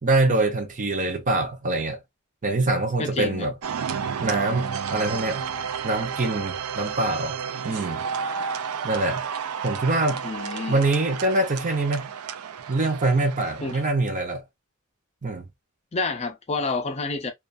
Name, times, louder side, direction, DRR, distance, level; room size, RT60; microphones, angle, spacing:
voice 1, 0.0-2.0 2.4-3.5 4.2-5.5 5.8-7.4 7.6-8.0 8.8-9.2 9.6-10.2 10.7-12.1 12.7-14.4 15.2-15.5, right 2 dB, 35° right, 0.6 m, -24 dB
voice 2, 3.0-3.5 10.2-10.8 13.6-13.8 15.9-17.3, left 3 dB, 30° left, 0.5 m, -29 dB
sound 1, 3.6-13.9, right 7 dB, 85° right, 0.4 m, -32 dB
2.4 x 2.3 x 2.5 m
head